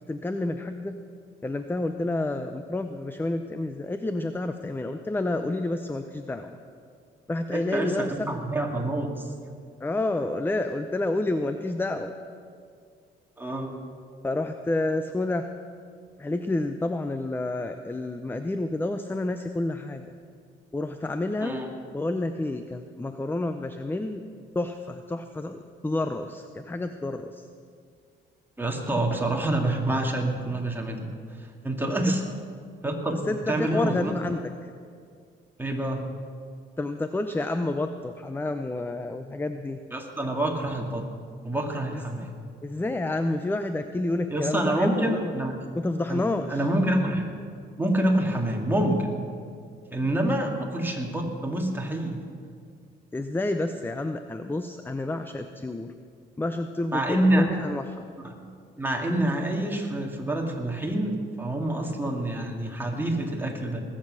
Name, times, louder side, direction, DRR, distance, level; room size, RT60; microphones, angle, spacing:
voice 1, 0.1-1.0 1.4-6.6 7.3-8.1 9.8-12.2 14.2-15.5 16.2-20.1 20.7-21.6 21.9-24.2 24.5-27.5 32.0-32.1 33.3-34.7 36.8-39.8 41.9-42.0 42.6-45.3 45.8-46.6 53.1-55.9 56.4-58.1, left 2 dB, 10° left, 8 dB, 0.6 m, -29 dB
voice 2, 7.5-9.3 13.4-13.7 21.4-21.7 28.6-31.1 31.6-32.2 32.8-34.1 35.6-36.0 39.9-41.0 41.4-42.3 44.3-45.6 46.1-46.2 46.5-47.2 47.8-49.1 49.9-52.2 56.9-57.5 58.2-58.3 58.8-63.8, right 1 dB, 10° right, 1 dB, 2.2 m, -27 dB
20.0 x 7.6 x 6.4 m, 2.2 s
cardioid pair, 90°, 20 cm